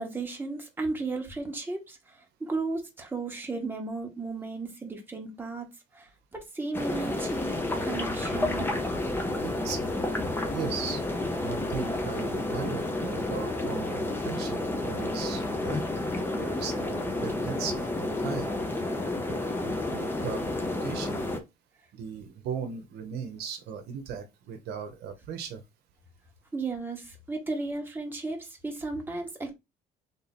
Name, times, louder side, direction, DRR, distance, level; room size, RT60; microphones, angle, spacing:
voice 1, 0.0-5.7 5.9-8.7 26.5-29.5, right 3 dB, 10° right, 1.3 m, -35 dB
sound 1, 6.7-21.4, left 2 dB, 10° left, 0.9 m, -30 dB
voice 2, 9.4-9.8 10.5-11.0 11.4-15.8 16.3-18.5 19.1-21.4 21.9-25.6, right 6 dB, 75° right, 0.8 m, -38 dB
3.6 x 2.7 x 4.2 m
cardioid pair, 110°, 17 cm